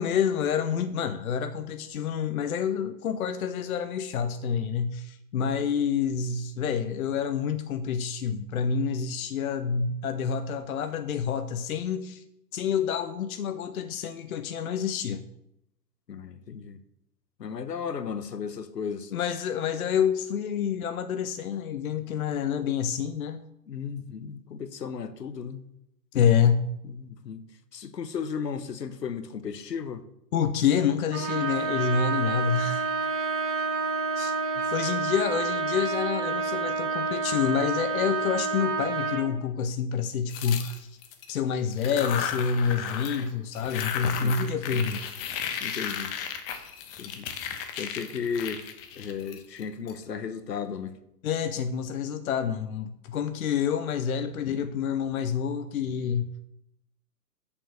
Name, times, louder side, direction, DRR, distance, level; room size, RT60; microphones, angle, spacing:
voice 1, 0.0-12.2 12.5-15.2 19.1-23.4 26.1-26.7 30.3-32.8 34.2-34.3 34.7-41.0 41.3-45.0 51.2-56.5, left 7 dB, 55° left, 0.8 m, -28 dB
voice 2, 16.1-16.8 17.4-19.1 23.7-25.6 26.8-27.4 27.7-30.0 34.6-34.7 44.2-44.9 45.6-46.2 47.0-47.3 47.8-48.7 49.0-51.0, left 6 dB, 75° left, 1.0 m, -35 dB
Trumpet, 31.1-39.3, right 4 dB, 25° right, 2.5 m, -29 dB
sound 1, 40.3-41.3 41.7-43.3 43.5-49.9, left 8 dB, 35° left, 1.1 m, -34 dB
7.2 x 6.9 x 7.0 m
figure-of-eight pair, 110°, 50 cm